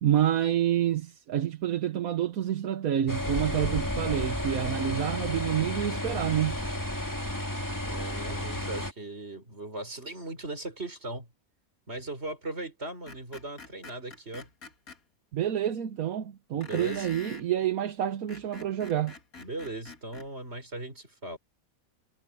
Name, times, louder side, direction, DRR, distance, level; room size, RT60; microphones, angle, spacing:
voice 1, 0.0-6.6 15.3-19.1, right 11 dB, 80° right, 1.4 m, -28 dB
sound 1, 3.1-8.9, left 1 dB, 15° left, 2.0 m, -32 dB
voice 2, 7.8-11.3 11.9-14.5 16.5-17.1 19.4-21.4, right 2 dB, 45° right, 5.3 m, -38 dB
Screech, 13.1-15.0 16.6-17.5 18.1-20.3, left 4 dB, 80° left, 2.7 m, -46 dB
omnidirectional pair, 1.5 m